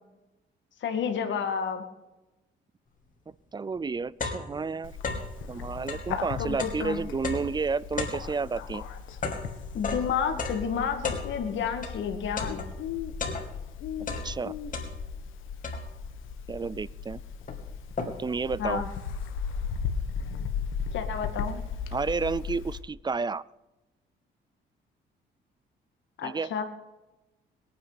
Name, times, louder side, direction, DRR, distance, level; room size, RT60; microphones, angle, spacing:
voice 1, 0.8-1.8 6.4-7.0 9.7-12.7 18.6-18.9 20.9-21.6 26.2-26.6, left 7 dB, 70° left, 6 dB, 2.1 m, -30 dB
sound 1, 3.3-3.4 3.8-5.4 5.8-12.0 12.4-13.7 14.0-15.3 15.6-16.2 16.8-16.9 17.2-18.4, left 3 dB, 40° left, 2.7 m, -36 dB
voice 2, 3.5-5.0 5.5-8.9 14.2-14.5 16.5-17.2 18.0-18.8 21.9-23.4 26.2-26.5, right 4 dB, 20° right, 20 dB, 0.5 m, -31 dB
Bird, 4.8-22.8, left 6 dB, 90° left, 1.5 m, -37 dB
22.0 x 9.6 x 4.1 m, 1.0 s
cardioid pair, 90°, 20 cm